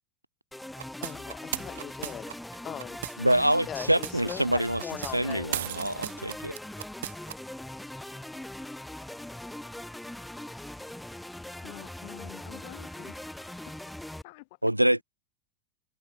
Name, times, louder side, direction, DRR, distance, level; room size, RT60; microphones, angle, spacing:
sound 1, 0.5-14.2, left 1 dB, 5° left, 1.7 m, -41 dB
sound 2, 0.8-3.3 3.8-4.3 4.8-7.3, right 13 dB, 55° right, 1.8 m, -36 dB
voice 1, 1.0-2.3 2.6-3.0 3.7-5.5, left 10 dB, 25° left, 6.0 m, -39 dB
voice 2, 3.2-4.8 5.1-6.6 14.6-15.0, right 1 dB, 90° right, 1.3 m, -25 dB
voice 3, 11.6-13.2 14.1-14.5, left 25 dB, 50° left, 1.9 m, -47 dB
figure-of-eight pair, 90°, 0 cm